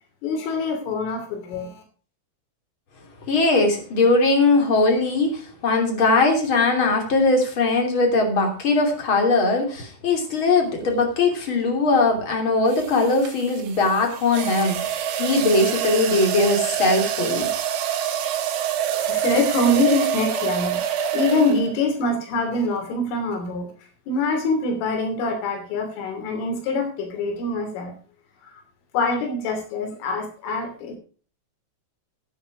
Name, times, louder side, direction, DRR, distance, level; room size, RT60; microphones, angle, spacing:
voice 1, 0.2-1.8 19.0-23.7 24.1-28.0 28.4-28.6 28.9-31.0, left 2 dB, 75° left, 4 dB, 5.4 m, -24 dB
voice 2, 3.3-17.5, left 3 dB, 30° left, 3 dB, 3.0 m, -20 dB
sound 1, 10.8-11.0 12.7-21.9, right 10 dB, 75° right, 3.8 m, -26 dB
11.0 x 10.0 x 4.8 m, 0.39 s
omnidirectional pair, 5.8 m